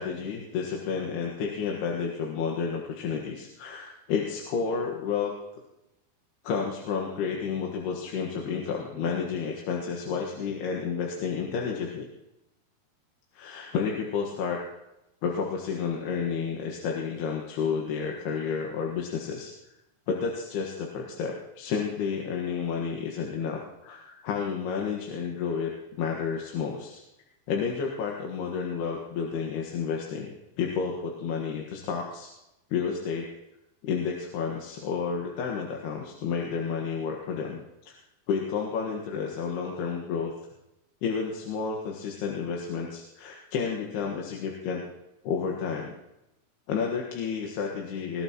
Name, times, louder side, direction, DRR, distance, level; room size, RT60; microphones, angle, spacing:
voice 1, 0.0-5.3 6.4-12.1 13.3-14.6 15.2-19.5 20.1-25.7 26.0-27.0 27.5-32.3 32.7-33.3 33.8-38.0 38.3-40.3 41.0-44.8 45.3-46.0 46.7-48.2, left 6 dB, 85° left, -1 dB, 3.5 m, -31 dB
21.0 x 17.5 x 3.0 m, 0.90 s
omnidirectional pair, 4.6 m